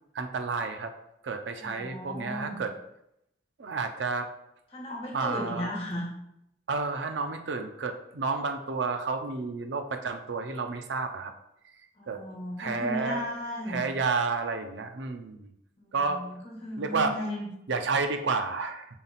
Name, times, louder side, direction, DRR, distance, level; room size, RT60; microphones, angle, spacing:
voice 1, 0.1-0.9 1.2-2.7 3.6-4.3 5.1-5.7 6.7-11.3 12.1-12.2 12.6-13.2 13.7-15.5 15.9-16.2 16.8-17.1 17.7-18.9, right 4 dB, 80° right, 7 dB, 0.6 m, -30 dB
voice 2, 1.6-2.6 4.7-6.1 12.0-13.8 15.8-17.5, left 1 dB, 30° left, -4 dB, 1.5 m, -36 dB
5.8 x 3.9 x 4.1 m, 0.81 s
head